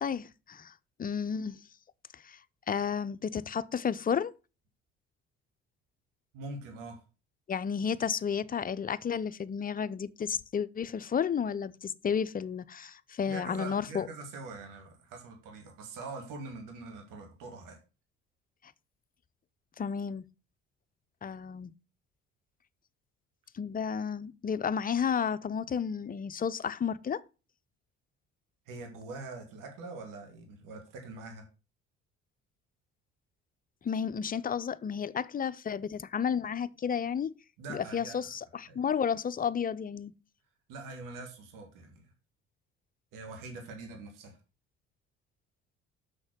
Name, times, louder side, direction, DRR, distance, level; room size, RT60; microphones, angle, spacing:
voice 1, 0.0-0.7 1.0-1.6 2.1-2.4 2.7-4.3 7.5-14.1 19.8-20.2 21.2-21.7 23.5-27.2 33.8-37.3 37.7-40.1, left 7 dB, 25° left, 0.6 m, -32 dB
voice 2, 6.3-7.0 13.2-17.8 28.7-31.5 37.6-38.3 38.7-38.8 40.7-42.1 43.1-44.4, right 3 dB, 60° right, 2.1 m, -44 dB
6.3 x 6.1 x 6.2 m
figure-of-eight pair, 50°, 35 cm